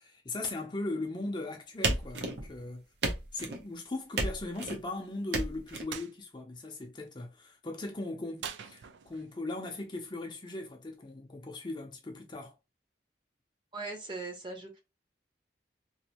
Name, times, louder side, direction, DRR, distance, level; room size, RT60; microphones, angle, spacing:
voice 1, 0.0-2.8 3.3-12.5, left 2 dB, 25° left, 0.6 m, -38 dB
sound 1, 1.8-2.6 3.0-3.6 4.2-4.8 5.3-5.8, right 2 dB, 70° right, 0.8 m, -32 dB
sound 2, 5.9-6.1 8.4-9.4, right 8 dB, 90° right, 0.4 m, -42 dB
voice 2, 13.7-14.8, right 3 dB, 25° right, 0.8 m, -39 dB
3.0 x 2.6 x 2.9 m
head